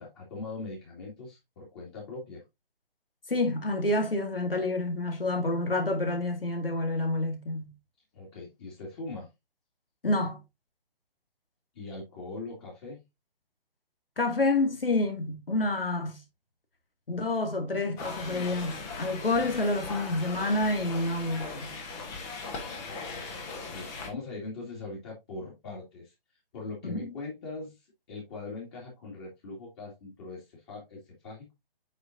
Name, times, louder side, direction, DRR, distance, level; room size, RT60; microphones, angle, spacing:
voice 1, 0.0-2.4 8.1-9.3 11.7-13.0 22.9-26.1 26.5-31.5, left 3 dB, 25° left, 2.3 m, -41 dB
voice 2, 3.3-7.7 10.0-10.4 14.2-16.2 17.1-21.7 26.8-27.1, left 2 dB, 70° left, 2.1 m, -28 dB
sound 1, 18.0-24.1, left 4 dB, 10° left, 0.7 m, -39 dB
8.3 x 5.1 x 2.6 m
figure-of-eight pair, 140°, 29 cm